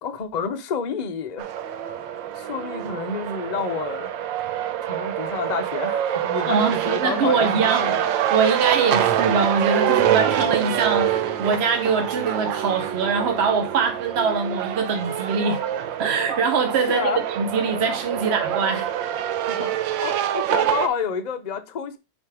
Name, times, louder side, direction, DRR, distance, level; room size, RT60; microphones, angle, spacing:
voice 1, 0.0-1.5 2.3-4.1 4.8-8.0 8.8-8.9 16.3-16.4 16.9-17.2 19.5-22.0, left 6 dB, 45° left, 0.5 m, -29 dB
sound 1, 1.4-20.9, right 10 dB, 85° right, 1.4 m, -25 dB
voice 2, 6.4-15.6 16.0-17.1 17.4-18.9, right 5 dB, 50° right, 0.8 m, -23 dB
6.3 x 4.4 x 4.8 m
omnidirectional pair, 2.0 m